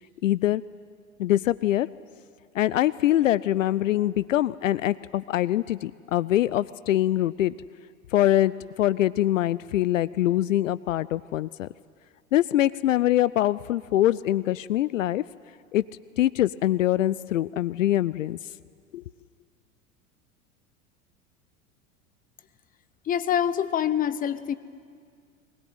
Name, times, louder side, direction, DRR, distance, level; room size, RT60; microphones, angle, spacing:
voice 1, 0.2-0.6 1.2-1.9 2.5-7.5 8.1-11.7 12.3-15.2 15.7-15.8 16.2-18.4 18.9-19.0, left 13 dB, 65° left, 18 dB, 0.5 m, -23 dB
voice 2, 23.0-24.5, left 9 dB, 20° left, 16 dB, 0.8 m, -25 dB
21.0 x 20.0 x 9.3 m, 2.1 s
figure-of-eight pair, 80°, 41 cm